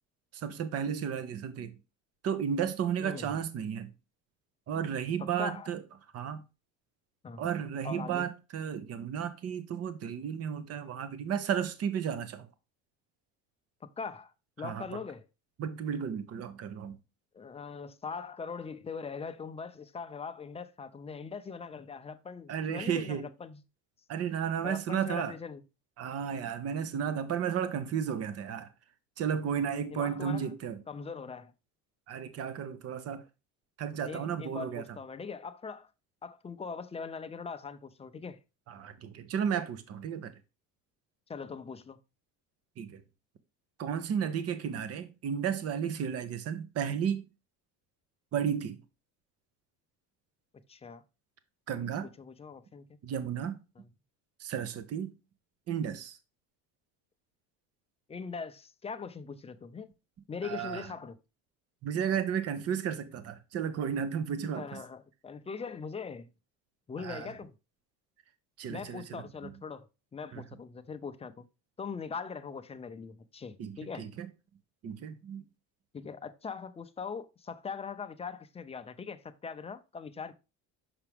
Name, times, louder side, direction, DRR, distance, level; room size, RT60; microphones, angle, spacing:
voice 1, 0.3-1.7 2.2-3.9 4.7-5.8 6.1-6.4 7.4-12.5 14.6-14.8 15.6-17.0 22.5-23.3 24.1-25.3 26.0-28.7 29.2-30.8 32.1-33.2 33.8-34.8 38.7-40.3 42.8-43.0 43.8-47.3 48.3-48.8 51.7-52.1 53.0-53.6 54.4-55.1 55.7-56.2 60.4-60.9 61.8-64.8 67.0-67.3 68.6-69.5 70.3-70.4 73.6-74.3 74.8-75.4, right 8 dB, 45° right, 0.9 m, -33 dB
voice 2, 3.0-3.3 5.2-5.7 7.2-7.4 7.8-8.3 13.8-15.2 17.3-23.6 24.6-25.6 29.5-29.6 29.9-30.5 30.9-31.5 34.0-35.9 36.2-38.4 41.3-42.0 50.7-51.0 52.2-52.9 58.1-59.9 60.3-61.2 64.6-66.3 66.9-67.5 68.7-69.9 70.1-71.5 71.8-74.1 75.9-80.3, left 5 dB, 20° left, 0.5 m, -41 dB
5.9 x 5.8 x 3.4 m
cardioid pair, 130°, 34 cm